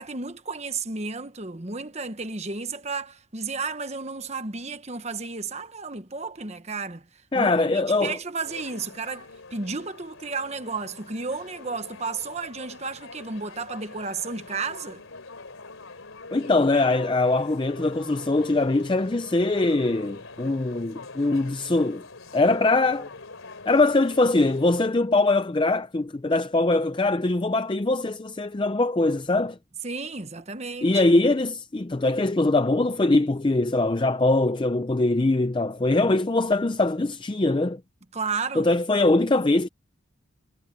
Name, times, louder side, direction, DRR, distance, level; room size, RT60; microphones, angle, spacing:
voice 1, 0.0-7.0 7.3-15.0 16.3-16.5 29.8-31.0 38.1-38.7, right 4 dB, 30° right, 1.2 m, -33 dB
voice 2, 7.3-8.2 16.3-22.0 22.3-23.1 23.7-29.6 30.8-37.8 38.6-39.7, left 2 dB, 25° left, 0.5 m, -22 dB
sound 1, 8.4-24.9, left 3 dB, 85° left, 3.1 m, -44 dB
head